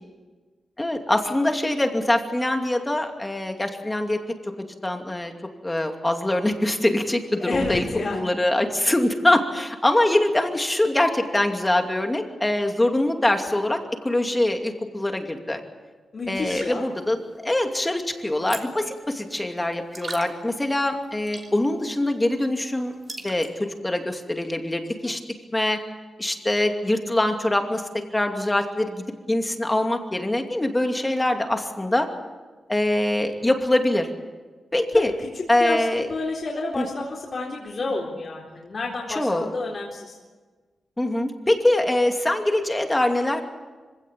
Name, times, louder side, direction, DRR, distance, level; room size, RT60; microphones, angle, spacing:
voice 1, 0.8-4.2 4.8-5.3 5.6-7.9 8.1-15.6 16.3-17.2 17.4-22.9 23.2-25.2 25.5-25.8 26.2-27.8 28.1-32.1 32.7-34.1 34.7-35.1 35.5-36.1 36.8-36.9 39.1-39.5 41.0-43.4, left 1 dB, 15° left, 4 dB, 2.5 m, -23 dB
voice 2, 7.4-8.2 16.1-16.9 35.6-40.1, left 3 dB, 45° left, -3 dB, 4.0 m, -30 dB
sound 1, 16.3-23.8, right 3 dB, 35° right, 3.1 m, -43 dB
25.5 x 17.0 x 8.7 m, 1.4 s
wide cardioid pair, 120°, 0 cm